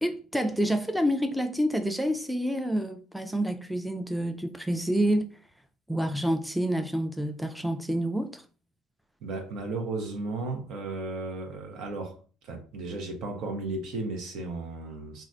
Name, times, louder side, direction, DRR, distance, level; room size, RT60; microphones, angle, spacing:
voice 1, 0.0-5.3 5.9-8.4, equal, ahead, 0.4 m, -28 dB
voice 2, 9.2-15.2, right 3 dB, 70° right, 0.8 m, -35 dB
3.1 x 2.4 x 2.6 m
hypercardioid pair, 70°, 0 cm